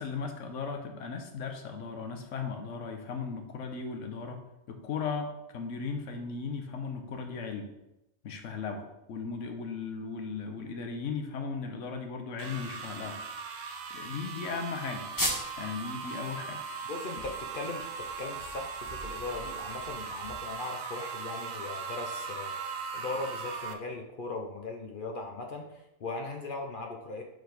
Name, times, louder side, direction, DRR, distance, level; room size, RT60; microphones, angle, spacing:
voice 1, 0.0-4.4 4.7-7.7 8.2-13.2 13.9-15.1 15.6-16.6, left 5 dB, 70° left, 5 dB, 1.1 m, -37 dB
sound 1, 12.4-23.7, right 5 dB, 60° right, 0.4 m, -39 dB
sound 2, 15.2-15.7 16.0-16.1 16.5-21.2, equal, 15° left, 1.0 m, -38 dB
voice 2, 16.8-27.2, left 3 dB, 50° left, 3 dB, 0.7 m, -39 dB
5.1 x 4.0 x 5.1 m, 0.92 s
omnidirectional pair, 1.4 m